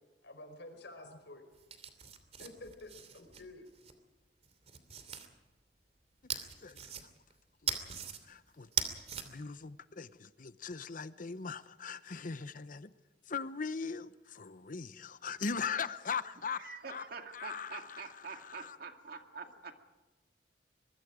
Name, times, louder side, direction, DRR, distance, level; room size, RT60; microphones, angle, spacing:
voice 1, 0.2-1.4 2.4-3.7, left 2 dB, 80° left, 4.9 m, -50 dB
sound 1, 1.5-3.9 4.4-5.3 6.3-7.3 7.7-8.2 8.6-9.2, right 7 dB, 40° right, 2.8 m, -39 dB
voice 2, 6.3-6.8 7.6-7.8 8.3-8.7 9.2-12.9 13.3-17.0 17.3-18.8, left 5 dB, 50° left, 0.8 m, -40 dB
voice 3, 16.5-19.7, right 5 dB, 60° right, 2.3 m, -46 dB
24.5 x 22.5 x 5.0 m
head